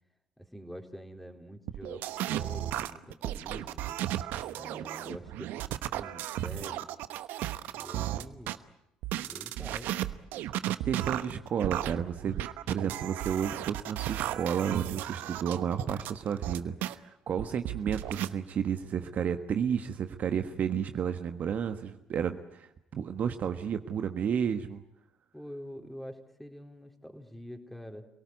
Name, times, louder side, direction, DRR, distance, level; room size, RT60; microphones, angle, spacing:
voice 1, 0.4-4.0 4.5-7.0 7.7-8.6 9.2-10.1 25.3-28.1, equal, 5° left, 4 dB, 4.0 m, -46 dB
sound 1, 1.7-8.6 9.0-16.9 17.4-18.3, right 13 dB, 65° right, 1.0 m, -34 dB
voice 2, 10.8-24.8, right 8 dB, 50° right, 7 dB, 1.4 m, -32 dB
27.5 x 18.0 x 9.6 m, 0.83 s
hypercardioid pair, 60°, 3 cm